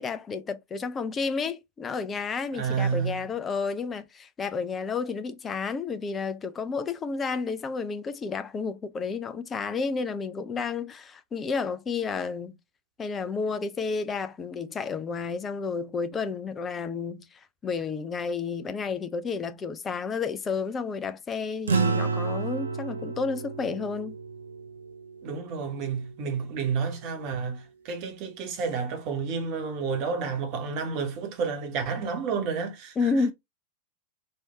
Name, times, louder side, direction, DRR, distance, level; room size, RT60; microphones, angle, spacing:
voice 1, 0.0-12.6 13.0-24.2 33.0-33.3, left 5 dB, 20° left, 0.4 m, -31 dB
voice 2, 2.5-3.2 25.2-33.3, right 5 dB, 40° right, 1.1 m, -30 dB
sound 1, 21.7-26.3, right 5 dB, 70° right, 0.6 m, -31 dB
3.2 x 2.7 x 4.3 m
figure-of-eight pair, 90°, 0 cm